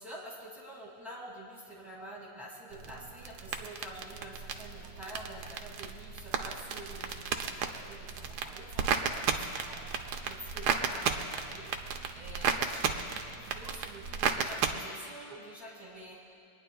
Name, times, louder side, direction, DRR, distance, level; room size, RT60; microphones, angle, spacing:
voice 1, 0.0-9.9 10.2-11.7 12.1-16.5, right 1 dB, ahead, -5 dB, 2.3 m, -47 dB
sound 1, 2.7-14.7, right 6 dB, 80° right, 1.2 m, -34 dB
25.0 x 10.0 x 2.3 m, 2.3 s
omnidirectional pair, 1.8 m